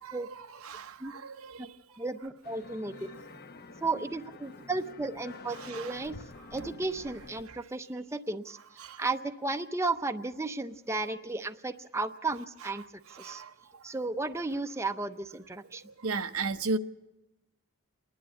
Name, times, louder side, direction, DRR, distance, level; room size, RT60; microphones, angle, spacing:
voice 1, 0.6-1.8 5.6-6.0 6.5-6.7 8.8-9.0 13.2-13.5 16.0-16.8, right 3 dB, 85° right, 0.9 m, -35 dB
voice 2, 2.0-3.1 3.8-6.2 6.5-12.8 13.1-13.4 13.8-15.8, right 3 dB, 15° right, 0.6 m, -34 dB
sound 1, 2.4-7.4, left 3 dB, 45° left, 0.9 m, -48 dB
28.0 x 11.0 x 8.5 m
head